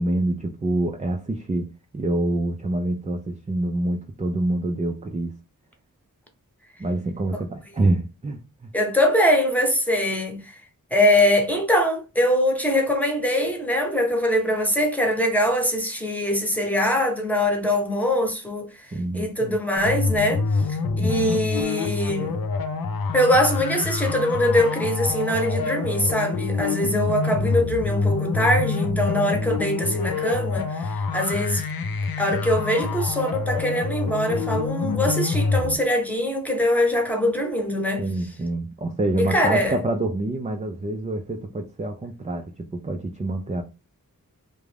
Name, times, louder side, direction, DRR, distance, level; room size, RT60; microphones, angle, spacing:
voice 1, 0.0-1.7 1.9-5.3 6.8-8.7 18.9-19.6 21.0-21.4 34.3-34.6 38.0-43.6, right 2 dB, 20° right, 0.4 m, -26 dB
voice 2, 8.7-10.5 10.9-18.7 19.1-20.4 20.7-22.4 23.1-31.6 32.2-38.0 39.2-39.8, left 1 dB, 5° left, 0.8 m, -22 dB
sound 1, 19.8-35.8, left 4 dB, 80° left, 0.5 m, -26 dB
2.4 x 2.2 x 3.2 m
wide cardioid pair, 55°, 35 cm